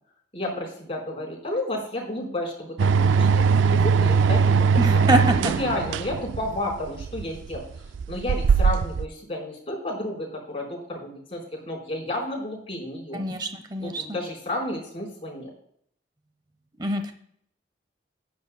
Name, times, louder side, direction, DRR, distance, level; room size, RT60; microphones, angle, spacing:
voice 1, 0.3-7.6 8.1-13.2 13.8-15.5, left 1 dB, 30° left, -3 dB, 4.2 m, -32 dB
sound 1, 2.8-9.1, right 5 dB, 90° right, 0.3 m, -21 dB
voice 2, 4.8-5.5 13.1-14.0 16.8-17.1, right 1 dB, 25° right, 7 dB, 0.9 m, -25 dB
14.5 x 11.0 x 2.2 m, 0.65 s
head